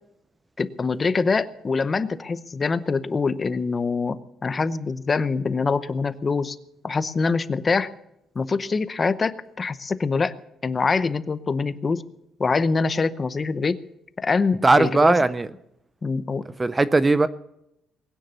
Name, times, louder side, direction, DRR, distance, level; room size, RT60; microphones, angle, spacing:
voice 1, 0.6-6.6 6.8-7.9 8.3-10.3 10.6-12.0 12.4-13.8 14.2-15.2 16.0-16.5, left 4 dB, 25° left, 14 dB, 0.7 m, -24 dB
voice 2, 14.6-15.5 16.6-17.3, right 2 dB, 15° right, 15 dB, 0.5 m, -18 dB
21.0 x 9.9 x 6.8 m, 0.81 s
cardioid pair, 140°, 0 cm